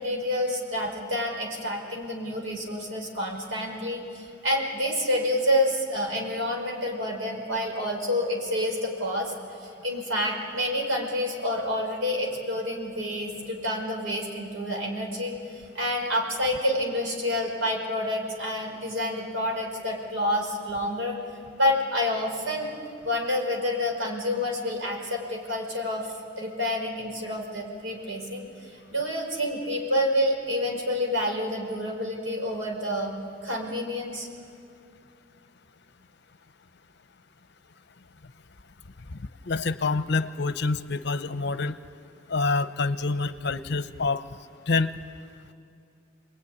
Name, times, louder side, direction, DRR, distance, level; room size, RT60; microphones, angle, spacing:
voice 1, 0.0-9.3 9.6-21.2 21.6-22.7 23.0-26.1 26.4-33.1 33.4-34.3, left 1 dB, 85° right, 1 dB, 5.2 m, -28 dB
voice 2, 39.1-41.8 42.3-44.2 44.7-44.9, left 3 dB, 55° left, 11 dB, 0.8 m, -27 dB
27.5 x 21.0 x 9.8 m, 2.4 s
head